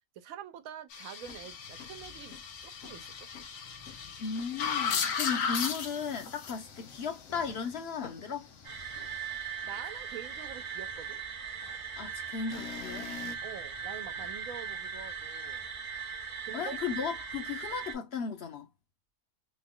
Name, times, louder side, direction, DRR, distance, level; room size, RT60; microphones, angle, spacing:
voice 1, 0.2-2.4 2.6-3.3 9.6-11.2 13.4-15.7 16.4-16.8, right 9 dB, 85° right, 1.0 m, -46 dB
sound 1, 0.9-8.2 12.5-13.4, left 6 dB, 85° left, 1.1 m, -36 dB
sound 2, 1.2-14.6, left 4 dB, 40° left, 0.6 m, -58 dB
voice 2, 4.2-8.5 12.0-13.1 16.5-18.7, left 6 dB, 55° left, 0.9 m, -36 dB
sound 3, 8.6-17.9, right 6 dB, 35° right, 0.6 m, -39 dB
3.1 x 2.2 x 3.5 m
omnidirectional pair, 1.4 m